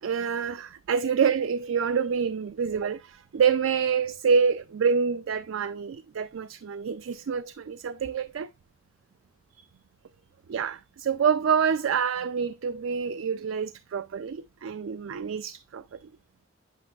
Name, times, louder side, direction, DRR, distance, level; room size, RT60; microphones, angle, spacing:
voice 1, 0.0-8.5 10.5-16.0, right 6 dB, 70° right, 0.4 m, -27 dB
8.5 x 5.3 x 2.4 m
head